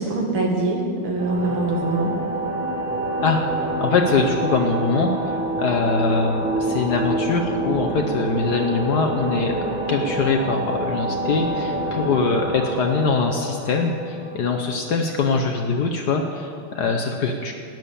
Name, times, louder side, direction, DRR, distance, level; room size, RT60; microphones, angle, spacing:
voice 1, 0.0-2.2, right 2 dB, 75° right, 1 dB, 2.5 m, -23 dB
sound 1, 1.2-14.8, right 2 dB, 55° right, 2.2 m, -27 dB
voice 2, 3.8-17.5, left 4 dB, 60° left, 3 dB, 1.1 m, -23 dB
12.0 x 9.5 x 6.9 m, 2.5 s
omnidirectional pair, 2.4 m